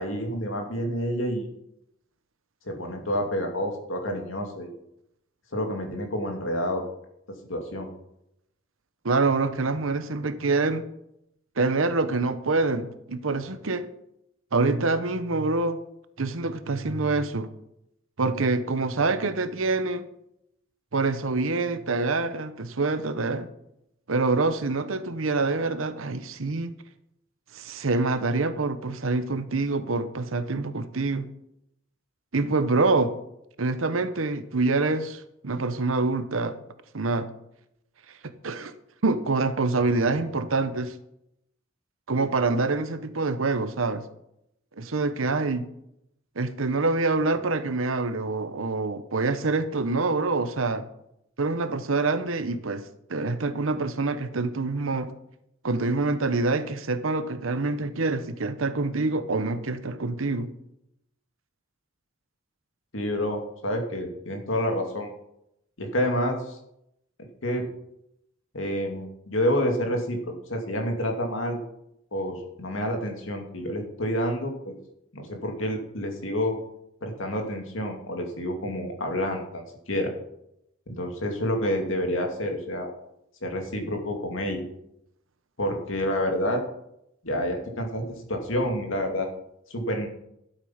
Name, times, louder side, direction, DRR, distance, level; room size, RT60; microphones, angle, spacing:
voice 1, 0.0-1.5 2.7-4.7 5.5-6.8 7.5-7.9 62.9-65.1 65.8-66.6 67.4-67.6 68.5-70.2 70.5-71.6 72.1-74.7 75.1-76.5 77.0-80.1 80.9-82.9 83.4-84.6 85.6-86.6 87.2-89.3 89.7-90.1, equal, 75° left, 3 dB, 2.4 m, -28 dB
voice 2, 9.0-10.8 11.6-13.9 14.5-15.8 16.2-17.5 18.2-20.1 20.9-23.5 24.1-26.7 27.5-31.3 32.3-33.1 33.6-36.6 36.9-37.3 38.2-38.7 39.0-40.9 42.1-44.0 44.8-45.7 46.4-50.9 51.4-55.1 55.6-60.5, right 3 dB, 90° right, 11 dB, 0.9 m, -26 dB
12.0 x 8.3 x 5.7 m, 0.80 s
head